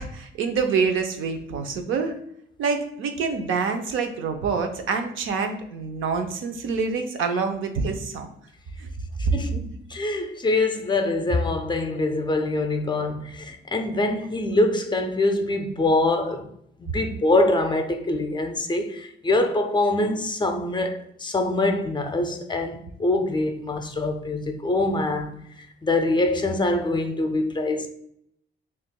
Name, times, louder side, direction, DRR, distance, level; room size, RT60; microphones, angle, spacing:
voice 1, 0.0-2.2 2.6-8.3 8.8-8.9, right 5 dB, 80° right, 0.6 m, -26 dB
voice 2, 9.2-16.5 16.8-27.9, left 2 dB, 25° left, 0.5 m, -24 dB
5.8 x 2.4 x 2.3 m
cardioid pair, 90°, 20 cm